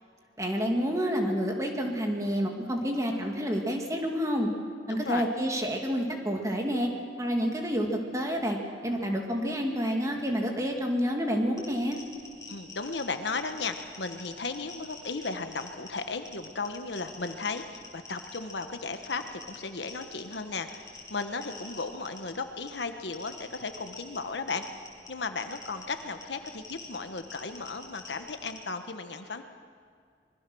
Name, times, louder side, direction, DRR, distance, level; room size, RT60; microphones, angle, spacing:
voice 1, 0.4-4.5 4.9-6.9 7.2-12.0, equal, 15° right, 2 dB, 2.3 m, -29 dB
voice 2, 4.9-5.3 12.5-24.6 25.1-29.4, left 4 dB, 70° left, 7 dB, 1.3 m, -35 dB
sound 1, 11.5-28.6, left 3 dB, 20° left, 4.6 m, -48 dB
25.0 x 21.5 x 6.3 m, 2.2 s
head